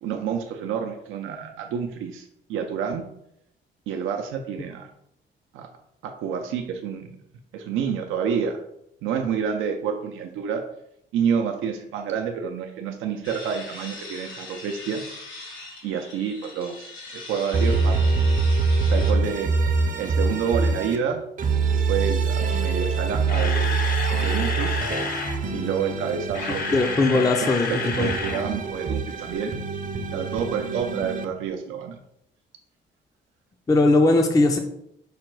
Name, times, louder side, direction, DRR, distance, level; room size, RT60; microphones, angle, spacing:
voice 1, 0.0-3.0 3.9-4.9 5.5-5.7 6.0-7.1 7.5-8.6 9.0-10.6 11.1-15.1 15.8-18.0 18.8-19.5 20.0-21.2 21.7-23.7 24.2-24.8 25.5-26.8 27.1-29.5 30.1-32.0, right 7 dB, 90° right, 4 dB, 0.5 m, -28 dB
sound 1, 13.2-19.1, left 2 dB, 90° left, 1.2 m, -40 dB
sound 2, 17.5-21.0 21.4-27.0 27.4-31.3, right 4 dB, 40° right, 0.6 m, -24 dB
Camera, 23.0-25.4 26.1-28.4 28.7-28.8 29.3-29.4, left 5 dB, 50° left, 0.7 m, -30 dB
voice 2, 26.7-28.1 33.7-34.6, left 2 dB, 15° left, 5 dB, 0.4 m, -19 dB
5.0 x 2.2 x 4.5 m, 0.78 s
cardioid pair, 90°, 20 cm